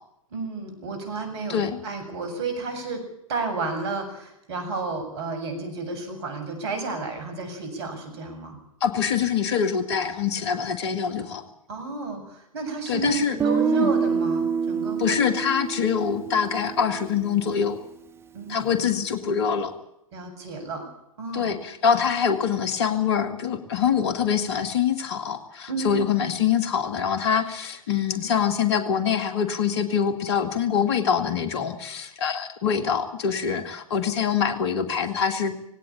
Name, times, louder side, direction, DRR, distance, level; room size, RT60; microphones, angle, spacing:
voice 1, 0.3-3.0 3.3-8.6 11.7-15.2 18.3-18.7 20.1-20.9 21.2-21.6 25.7-26.1, right 3 dB, 50° right, 6 dB, 7.6 m, -32 dB
voice 2, 8.8-11.4 12.9-13.4 13.7-13.9 15.0-17.8 18.5-19.7 21.3-35.5, left 7 dB, 50° left, 9 dB, 2.3 m, -24 dB
Guitar, 13.4-17.3, right 6 dB, 15° right, 0.9 m, -26 dB
19.0 x 17.5 x 8.7 m, 0.79 s
figure-of-eight pair, 110°, 17 cm